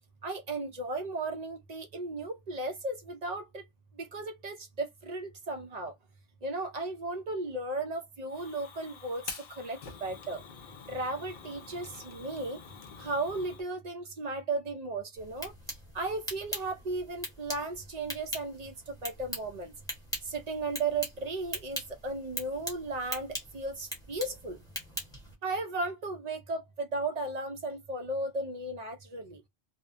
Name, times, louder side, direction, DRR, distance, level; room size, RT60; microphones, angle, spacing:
voice 1, 0.2-3.6 4.0-5.9 6.4-10.4 10.9-12.6 13.0-15.5 15.9-19.7 20.3-24.6 25.4-29.4, right 2 dB, 50° right, 0.5 m, -35 dB
Fire, 8.3-13.6, left 6 dB, 55° left, 0.7 m, -46 dB
sound 1, 15.2-25.3, equal, 5° left, 1.0 m, -41 dB
2.5 x 2.1 x 2.4 m
omnidirectional pair, 1.1 m